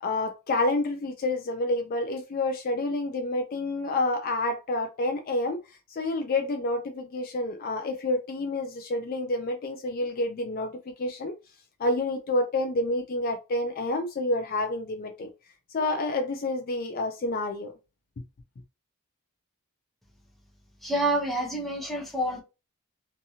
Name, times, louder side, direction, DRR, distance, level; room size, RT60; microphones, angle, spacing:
voice 1, 0.0-11.3 11.8-15.3 15.7-17.7, left 2 dB, 40° left, 0.3 m, -29 dB
voice 2, 20.8-22.4, right 1 dB, ahead, 0.6 m, -28 dB
2.7 x 2.5 x 2.7 m
head